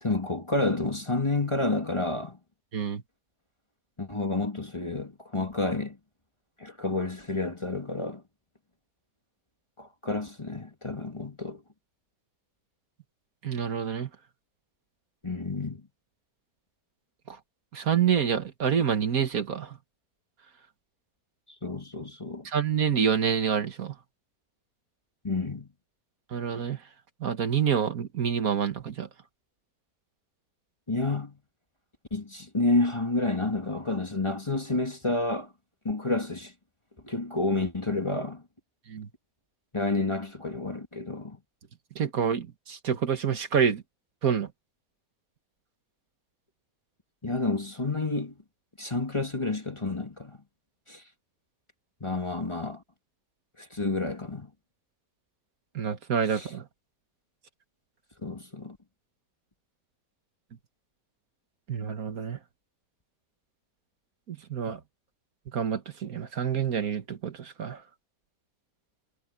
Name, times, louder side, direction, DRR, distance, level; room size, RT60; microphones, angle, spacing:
voice 1, 0.0-2.4 4.0-6.0 6.6-8.2 9.8-11.6 15.2-15.9 21.6-22.4 25.2-25.7 30.9-31.4 32.1-35.5 35.8-36.5 37.0-38.4 39.7-41.4 47.2-48.4 48.8-50.4 50.9-51.0 52.0-52.8 53.6-54.5 56.3-56.5 58.2-58.8, left 2 dB, 20° left, 1.8 m, -30 dB
voice 2, 13.4-14.1 17.3-17.4 17.7-19.8 22.5-23.9 26.3-26.8 27.2-29.1 38.9-39.1 42.0-43.8 44.2-44.5 55.8-56.6 61.7-62.4 64.3-64.8 65.5-67.8, right 7 dB, 70° right, 1.9 m, -27 dB
omnidirectional pair, 1.6 m